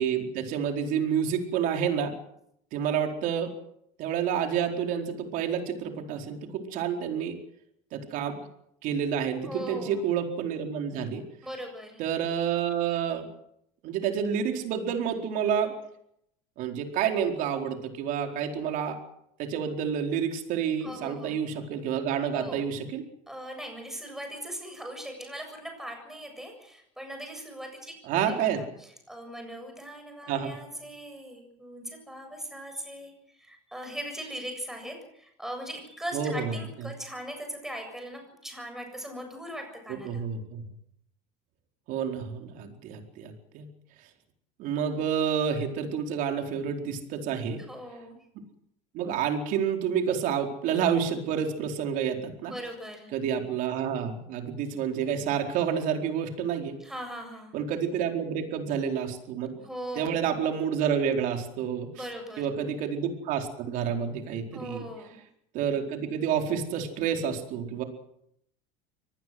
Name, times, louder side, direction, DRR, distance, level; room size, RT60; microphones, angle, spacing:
voice 1, 0.0-2.1 2.7-3.5 4.0-7.4 7.9-8.4 8.8-11.2 12.0-13.3 13.8-15.7 16.6-19.0 19.4-23.0 28.0-28.6 30.3-30.5 36.1-36.6 40.0-40.6 41.9-43.7 44.6-47.6 48.3-48.4 48.9-52.5 53.1-56.7 57.5-59.5 60.0-62.0 62.4-64.8 65.5-67.8, right 8 dB, 50° right, 4 dB, 4.5 m, -29 dB
voice 2, 9.4-10.0 11.4-12.0 20.8-21.3 22.3-22.6 23.3-40.2 47.7-48.2 52.4-53.1 56.8-57.5 59.6-60.2 61.9-62.5 64.5-65.2, equal, ahead, 4 dB, 7.4 m, -40 dB
24.5 x 19.5 x 7.9 m, 0.76 s
cardioid pair, 155°, 17 cm